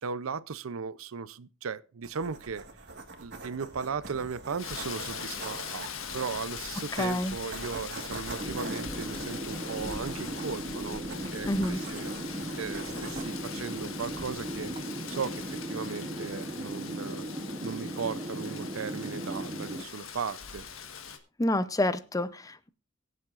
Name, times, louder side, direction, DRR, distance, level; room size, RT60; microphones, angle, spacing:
voice 1, 0.0-2.7 3.2-5.8 6.1-17.2 17.6-20.7, right 5 dB, 75° right, 0.6 m, -37 dB
sound 1, 2.0-14.8, right 3 dB, 55° right, 1.6 m, -45 dB
Rain, 4.6-21.2, left 7 dB, 70° left, 1.4 m, -41 dB
voice 2, 6.9-7.4 11.5-11.8 21.4-22.7, left 1 dB, 15° left, 0.5 m, -28 dB
sound 2, 8.4-19.8, right 1 dB, 25° right, 0.8 m, -37 dB
23.0 x 7.7 x 2.5 m
head